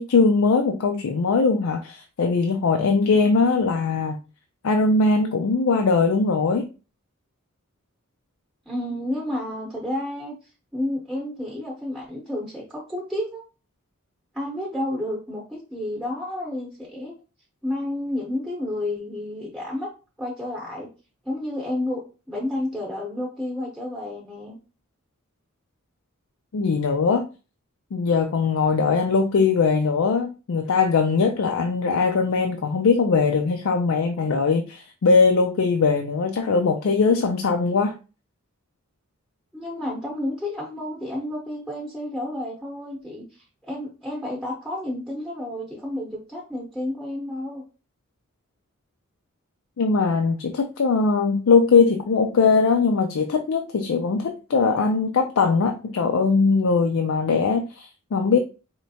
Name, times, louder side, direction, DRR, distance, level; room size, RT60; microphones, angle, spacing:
voice 1, 0.0-4.2 4.6-6.7 26.5-27.3 27.9-37.9 49.8-58.4, left 4 dB, 75° left, 0.4 m, -20 dB
voice 2, 8.7-10.3 10.7-13.4 14.3-17.1 17.6-19.9 20.2-20.9 21.2-24.6 39.5-43.2 43.7-47.6, left 1 dB, ahead, 0.9 m, -30 dB
4.3 x 3.2 x 2.8 m
head